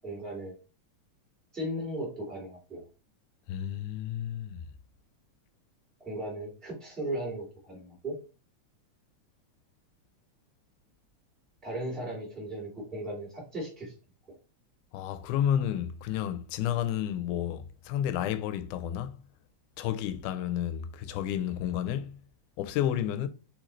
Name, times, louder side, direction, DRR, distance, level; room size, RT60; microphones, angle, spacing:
voice 1, 0.0-0.5 1.5-2.8 6.0-8.2 11.6-13.9, right 1 dB, ahead, 1.2 m, -36 dB
voice 2, 3.5-4.6 14.9-19.2 19.8-22.2 22.6-23.3, left 10 dB, 90° left, 2.0 m, -31 dB
4.5 x 3.8 x 3.0 m
omnidirectional pair, 3.5 m